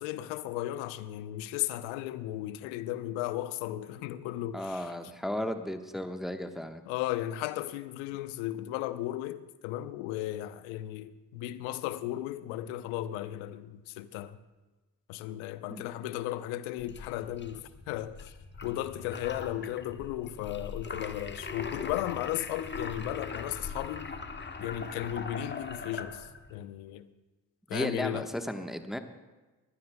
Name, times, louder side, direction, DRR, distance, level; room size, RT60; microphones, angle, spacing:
voice 1, 0.0-4.9 6.9-14.4 15.1-18.3 18.6-24.1 24.6-27.1 27.7-28.3, left 13 dB, 70° left, 0.8 m, -35 dB
voice 2, 4.5-6.8 15.7-15.8 27.7-29.0, equal, ahead, 1.2 m, -34 dB
sound 1, 16.8-26.5, left 4 dB, 20° left, 1.3 m, -41 dB
22.5 x 15.5 x 2.3 m
hypercardioid pair, 45°, 50 cm